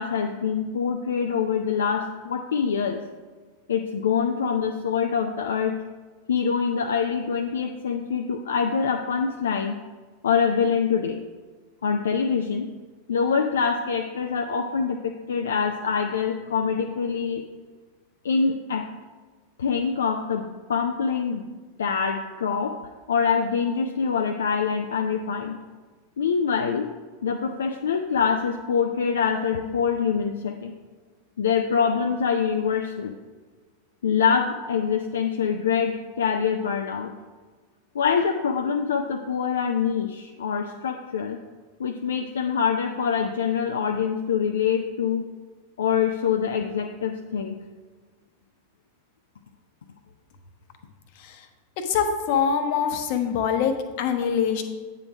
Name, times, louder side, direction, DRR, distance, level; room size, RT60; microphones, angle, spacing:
voice 1, 0.0-3.0 3.7-5.8 6.3-9.8 10.2-11.2 11.8-12.7 13.1-17.4 18.2-18.9 19.6-21.5 21.8-22.8 23.1-25.6 26.2-26.9 27.2-30.7 31.4-33.1 34.0-37.1 37.9-41.4 41.8-45.3 45.8-47.6, left 6 dB, 65° left, 4 dB, 0.4 m, -25 dB
voice 2, 51.9-54.6, left 7 dB, 50° left, 6 dB, 0.9 m, -24 dB
8.7 x 3.8 x 6.0 m, 1.4 s
figure-of-eight pair, 90°, 0 cm